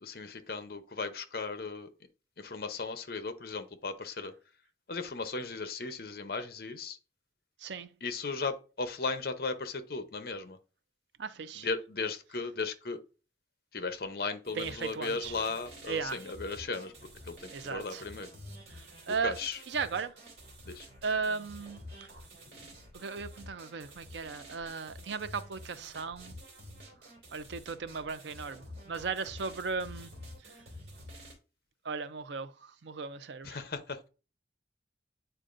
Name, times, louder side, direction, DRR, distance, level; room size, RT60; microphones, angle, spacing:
voice 1, 0.0-1.9 2.4-4.3 4.9-7.0 8.0-10.6 11.5-13.0 13.7-16.9 17.2-18.3 19.2-19.6 20.6-20.9 22.5-22.8 33.4-34.1, left 4 dB, 55° left, 0.7 m, -36 dB
voice 2, 11.2-11.7 14.6-15.3 15.9-16.2 17.5-18.0 19.1-19.3 19.7-20.1 21.0-21.8 22.9-26.4 27.3-30.1 31.9-32.5 32.8-33.6, right 5 dB, 85° right, 0.5 m, -36 dB
sound 1, 14.4-31.3, equal, 65° right, 2.3 m, -49 dB
8.9 x 4.5 x 2.5 m
head